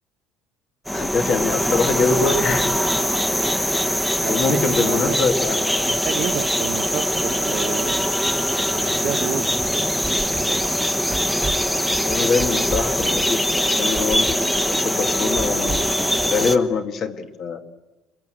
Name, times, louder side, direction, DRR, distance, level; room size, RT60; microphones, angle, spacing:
voice 1, 0.9-2.7 4.3-5.9 12.0-16.0 16.2-17.6, left 4 dB, 45° left, 6 dB, 2.2 m, -23 dB
sound 1, 0.9-16.6, equal, 5° left, 1.2 m, -22 dB
voice 2, 4.2-5.2 5.9-8.0 8.4-8.5 8.8-9.6, right 10 dB, 55° right, 7 dB, 1.4 m, -30 dB
sound 2, 9.5-16.3, right 3 dB, 15° right, 1.6 m, -33 dB
27.5 x 21.5 x 7.9 m, 1.1 s
cardioid pair, 130°, 0 cm